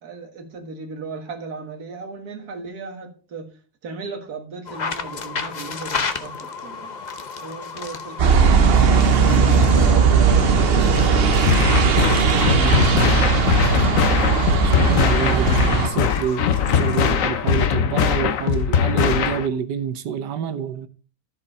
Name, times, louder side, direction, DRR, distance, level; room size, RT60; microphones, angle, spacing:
voice 1, 0.0-7.0 7.4-11.1, right 4 dB, 65° right, 2.1 m, -37 dB
sound 1, 4.7-17.3, left 4 dB, 40° left, 0.6 m, -33 dB
sound 2, 8.2-15.9, right 5 dB, 50° right, 0.8 m, -17 dB
sound 3, 11.5-19.5, left 7 dB, 60° left, 1.1 m, -21 dB
voice 2, 12.5-13.3 13.6-13.9 14.6-16.4 16.7-20.9, right 8 dB, 85° right, 1.5 m, -27 dB
14.0 x 5.1 x 4.3 m
omnidirectional pair, 1.8 m